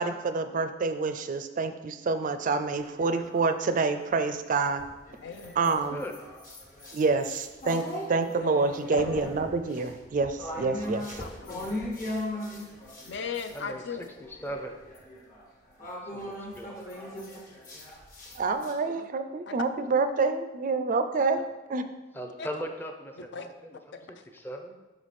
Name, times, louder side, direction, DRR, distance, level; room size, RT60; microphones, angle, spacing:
voice 1, 0.0-4.8 5.6-6.0 6.9-11.1 18.4-21.9, right 4 dB, 45° right, 9 dB, 0.4 m, -27 dB
sound 1, 2.8-4.1 4.7-13.6 14.0-18.7, left 1 dB, 45° left, 1.4 m, -39 dB
voice 2, 5.2-6.0 8.9-9.1 11.2-11.8 13.0-14.0 18.9-19.1 19.5-19.6 22.4-22.5 23.3-23.5 23.9-24.1, left 5 dB, 65° left, 8 dB, 0.5 m, -37 dB
voice 3, 13.5-14.0 14.3-14.8 16.0-16.7 22.1-23.8 24.3-24.8, equal, 10° left, 4 dB, 0.6 m, -38 dB
6.1 x 4.8 x 4.2 m, 1.1 s
head